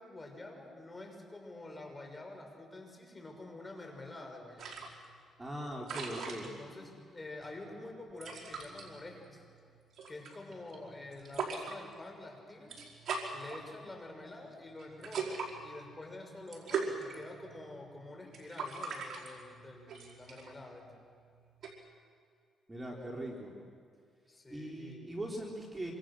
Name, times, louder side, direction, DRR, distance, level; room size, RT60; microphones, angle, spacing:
voice 1, 0.0-4.7 6.4-9.4 10.1-12.8 13.3-21.0 24.3-25.2, left 2 dB, 20° left, 3 dB, 6.3 m, -48 dB
sound 1, 4.6-21.7, right 5 dB, 60° right, 5.1 m, -43 dB
voice 2, 5.4-6.5 22.7-23.5 24.5-25.9, right 1 dB, 20° right, -1 dB, 4.2 m, -40 dB
27.0 x 26.0 x 6.5 m, 2.3 s
cardioid pair, 90°, 0 cm